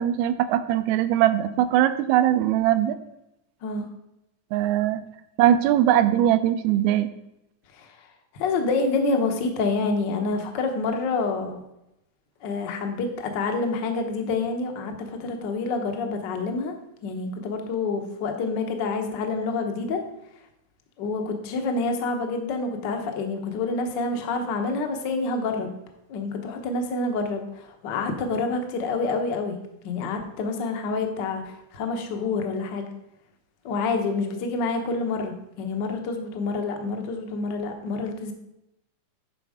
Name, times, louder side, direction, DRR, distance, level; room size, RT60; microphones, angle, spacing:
voice 1, 0.0-3.0 4.5-5.0 5.4-7.1, right 11 dB, 80° right, 11 dB, 1.9 m, -21 dB
voice 2, 8.4-11.6 12.4-16.7 17.0-20.0 21.0-25.7 26.1-29.6 29.8-32.9 33.6-38.3, left 3 dB, 70° left, 5 dB, 1.0 m, -27 dB
11.0 x 4.4 x 4.9 m, 0.87 s
omnidirectional pair, 3.5 m